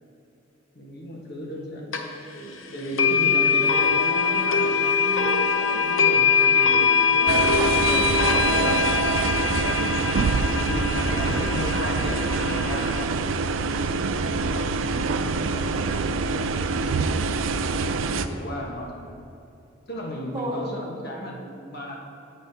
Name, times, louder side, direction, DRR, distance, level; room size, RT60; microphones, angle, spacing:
voice 1, 0.7-7.2 8.3-9.0 9.3-9.9 10.4-13.2 14.0-17.0 18.1-19.2 19.9-21.9, equal, 55° left, -1 dB, 1.3 m, -35 dB
sound 1, 1.9-2.0 3.0-13.0, left 6 dB, 85° left, 0.7 m, -22 dB
voice 2, 7.2-8.9 20.1-21.1, equal, 25° right, -1 dB, 1.0 m, -34 dB
sound 2, 7.3-18.3, right 4 dB, 75° right, 0.4 m, -25 dB
16.5 x 5.5 x 2.8 m, 2.8 s
head